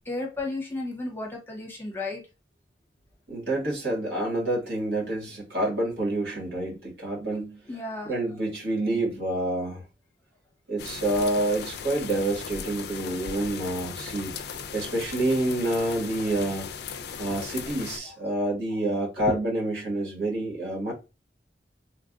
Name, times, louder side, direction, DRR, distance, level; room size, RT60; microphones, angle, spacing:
voice 1, 0.1-2.2 7.7-8.2 17.3-17.4 19.2-19.3, left 2 dB, 15° left, 0.7 m, -33 dB
voice 2, 3.3-7.6 8.0-9.8 10.7-14.3 14.7-16.7 17.2-20.9, right 1 dB, 70° right, 1.6 m, -28 dB
sound 1, 10.8-18.0, left 6 dB, 65° left, 0.4 m, -37 dB
3.3 x 2.5 x 2.4 m
head